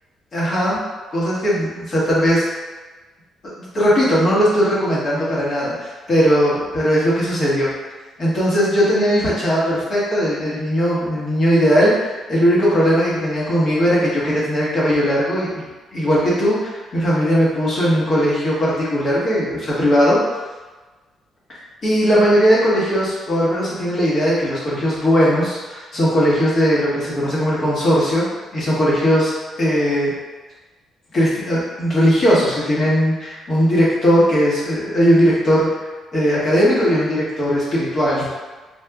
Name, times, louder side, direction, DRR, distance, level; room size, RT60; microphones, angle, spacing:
voice 1, 0.3-0.8 1.1-2.5 3.7-7.7 8.2-11.9 12.3-20.2 21.8-28.3 28.5-29.3 29.6-30.1 31.1-35.7 36.1-38.3, equal, 45° left, -7 dB, 1.3 m, -18 dB
4.3 x 2.3 x 2.4 m, 1.3 s
cardioid pair, 90°, 0 cm